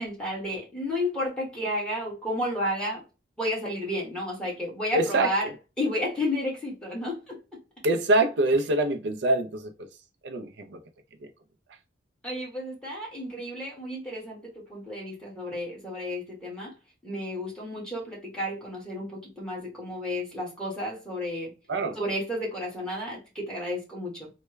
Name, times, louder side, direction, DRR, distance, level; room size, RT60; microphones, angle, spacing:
voice 1, 0.0-3.0 3.4-5.5 5.8-7.4 12.2-16.7 17.0-21.5 21.9-24.3, left 1 dB, 5° left, 1.4 m, -32 dB
voice 2, 4.9-5.5 7.8-9.7 10.2-10.8 21.7-22.0, right 2 dB, 65° right, 0.4 m, -25 dB
3.3 x 2.1 x 3.1 m
head